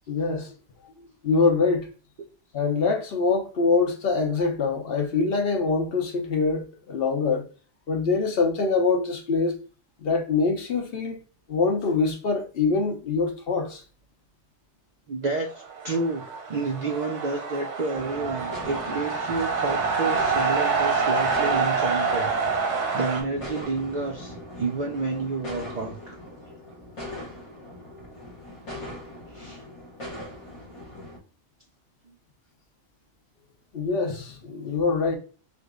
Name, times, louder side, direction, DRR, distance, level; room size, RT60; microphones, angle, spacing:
voice 1, 0.1-0.5 0.8-1.9 2.5-7.4 7.9-9.5 10.0-11.2 11.5-13.8 33.7-35.2, left 4 dB, 60° left, 0.8 m, -24 dB
voice 2, 15.1-22.3 22.6-26.2 27.3-27.4 29.3-29.6 32.1-32.2, right 3 dB, 55° right, 0.5 m, -30 dB
sound 1, 15.5-23.2, right 5 dB, 85° right, 1.1 m, -26 dB
sound 2, 17.9-31.2, left 1 dB, 30° left, 0.8 m, -40 dB
3.4 x 2.0 x 3.5 m
omnidirectional pair, 1.2 m